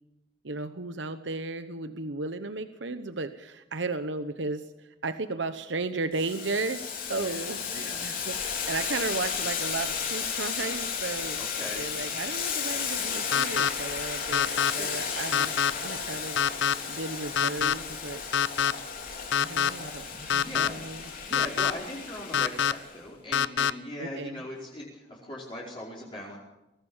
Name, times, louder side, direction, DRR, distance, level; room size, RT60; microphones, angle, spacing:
voice 1, 0.4-11.4 11.7-15.6 15.8-16.4 16.9-18.2 19.3-21.5 24.0-24.4, right 3 dB, 75° right, 10 dB, 1.0 m, -35 dB
Boiling, 6.1-22.9, left 6 dB, 50° left, 4.0 m, -34 dB
voice 2, 7.1-8.0 11.3-12.2 14.6-15.4 20.0-20.8 21.2-26.4, left 1 dB, 30° left, -5 dB, 4.9 m, -40 dB
sound 1, 13.3-13.7 14.3-14.7 15.3-15.7 16.4-16.7 17.4-17.7 18.3-18.7 19.3-19.7 20.3-20.7 21.3-21.7 22.3-22.7 23.3-23.7, left 8 dB, 80° left, 0.7 m, -24 dB
23.5 x 17.0 x 7.3 m, 0.96 s
head